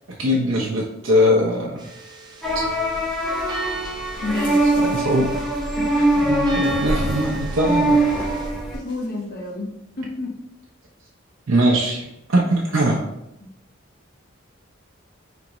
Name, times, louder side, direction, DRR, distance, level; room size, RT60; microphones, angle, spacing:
voice 1, 0.1-1.8 4.9-5.3 6.2-8.0 11.5-13.0, equal, 85° right, -3 dB, 0.6 m, -21 dB
sound 1, 1.8-8.5, right 2 dB, 20° right, 0.5 m, -38 dB
sound 2, 2.4-8.8, right 1 dB, ahead, 0.9 m, -22 dB
voice 2, 4.2-5.0 5.8-5.9 8.8-10.4 13.4-13.5, left 2 dB, 50° left, -1 dB, 0.8 m, -30 dB
sound 3, 4.2-5.3 5.6-9.2, equal, 25° left, 1.7 m, -39 dB
4.9 x 3.4 x 3.0 m, 0.87 s
head